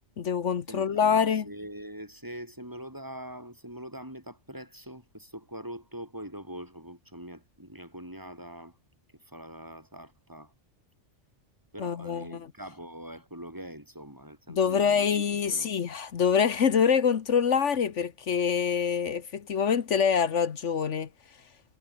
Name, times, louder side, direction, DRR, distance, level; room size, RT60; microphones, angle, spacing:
voice 1, 0.2-1.5 11.8-12.5 14.5-21.1, left 7 dB, 75° left, 1.5 m, -25 dB
voice 2, 0.7-8.8 9.3-10.5 11.7-15.8, equal, 15° right, 4.1 m, -43 dB
omnidirectional pair, 1.3 m